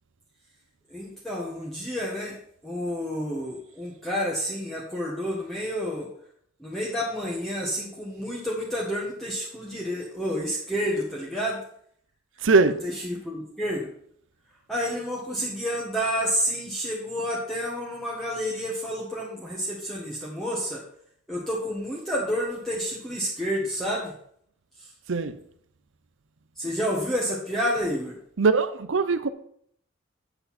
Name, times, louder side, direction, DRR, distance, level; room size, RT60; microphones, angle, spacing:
voice 1, 0.9-2.3 2.6-6.1 6.6-11.6 12.8-13.9 14.7-20.8 21.3-24.1 26.6-28.1, equal, ahead, -5 dB, 1.4 m, -29 dB
voice 2, 12.4-12.8 25.1-25.3 28.4-29.3, right 4 dB, 70° right, 13 dB, 0.6 m, -21 dB
8.0 x 7.9 x 4.3 m, 0.65 s
head